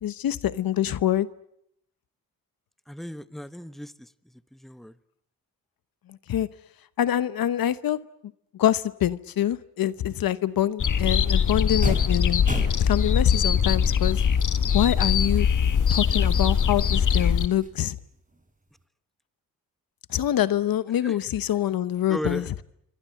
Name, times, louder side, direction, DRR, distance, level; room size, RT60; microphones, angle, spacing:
voice 1, 0.0-1.3 6.1-6.5 7.0-8.0 8.5-12.4 12.8-14.2 14.7-15.5 15.9-18.0 20.1-22.4, left 11 dB, 80° left, 15 dB, 1.0 m, -25 dB
voice 2, 2.9-4.1 4.5-4.9 21.0-21.2 22.1-22.6, left 1 dB, ahead, 13 dB, 1.2 m, -35 dB
sound 1, 10.5-10.6 10.9-14.7 15.1-15.2 15.7-17.3 17.6-18.8, right 2 dB, 20° right, 6.2 m, -38 dB
sound 2, 10.8-17.5, left 7 dB, 60° left, 1.6 m, -22 dB
28.0 x 25.0 x 7.8 m, 0.75 s
cardioid pair, 60°, 35 cm